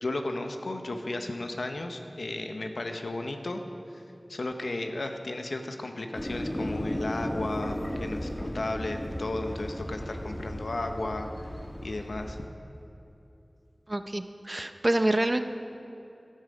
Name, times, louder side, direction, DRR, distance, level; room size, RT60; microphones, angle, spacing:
voice 1, 0.0-3.6 3.9-4.0 4.3-11.5 11.8-12.4, left 2 dB, 90° left, 5 dB, 0.8 m, -34 dB
sound 1, 6.1-12.5, equal, 35° left, 1.3 m, -35 dB
voice 2, 13.9-15.4, right 1 dB, 40° right, 9 dB, 0.6 m, -27 dB
12.0 x 10.0 x 5.1 m, 2.8 s
wide cardioid pair, 45°, 0 cm